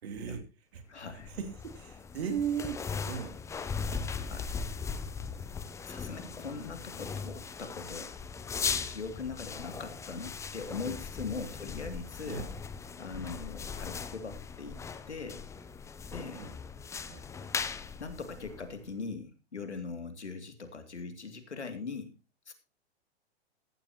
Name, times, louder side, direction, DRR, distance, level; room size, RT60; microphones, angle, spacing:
voice 1, 0.0-3.4 3.9-4.1 11.4-11.5 12.2-12.5 16.3-16.6 17.1-17.2, right 7 dB, 65° right, 7 dB, 3.1 m, -38 dB
voice 2, 0.9-1.3 4.3-4.5 5.8-8.1 8.8-12.5 13.0-14.8 15.1-15.4 16.1-16.4 18.0-22.1 22.5-22.6, left 4 dB, 90° left, 7 dB, 2.8 m, -41 dB
sound 1, 1.1-18.9, left 5 dB, 10° left, 0.6 m, -39 dB
15.0 x 12.0 x 3.0 m, 0.29 s
hypercardioid pair, 120°, 33 cm